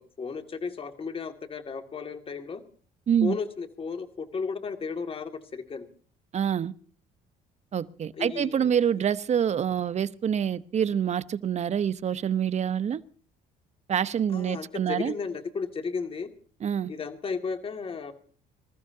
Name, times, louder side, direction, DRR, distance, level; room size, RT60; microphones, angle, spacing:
voice 1, 0.0-2.6 3.2-5.9 8.1-8.7 14.3-16.3 16.9-18.1, left 5 dB, 35° left, 2.3 m, -34 dB
voice 2, 6.3-6.7 7.7-13.0 13.9-15.1 16.6-16.9, right 8 dB, 40° right, 0.9 m, -26 dB
26.0 x 14.5 x 2.8 m
cardioid pair, 110°, 17 cm